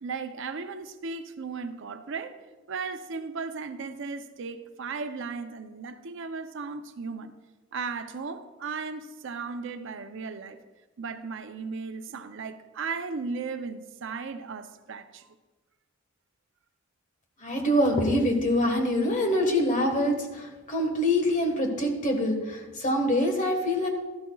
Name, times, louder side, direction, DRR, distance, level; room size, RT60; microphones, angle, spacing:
voice 1, 0.0-7.3 7.7-10.6 11.0-15.3, right 4 dB, 65° right, 9 dB, 0.6 m, -36 dB
voice 2, 17.4-23.9, left 1 dB, 40° left, 3 dB, 1.4 m, -25 dB
13.0 x 12.0 x 2.3 m, 1.2 s
head